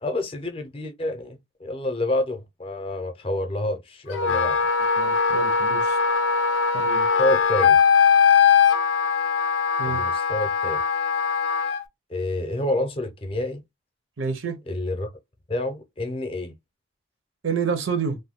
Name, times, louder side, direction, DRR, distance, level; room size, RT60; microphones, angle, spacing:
voice 1, 0.0-4.6 7.2-7.8 9.8-10.8 12.1-13.6 14.7-15.1 15.5-16.5, left 1 dB, 30° left, 0.6 m, -28 dB
Wind instrument woodwind instrument, 4.1-11.8, left 6 dB, 80° left, 0.4 m, -20 dB
voice 2, 5.0-6.0 6.7-7.1 9.8-10.0 14.2-14.6 17.4-18.2, right 5 dB, 85° right, 0.7 m, -28 dB
2.6 x 2.2 x 3.5 m
head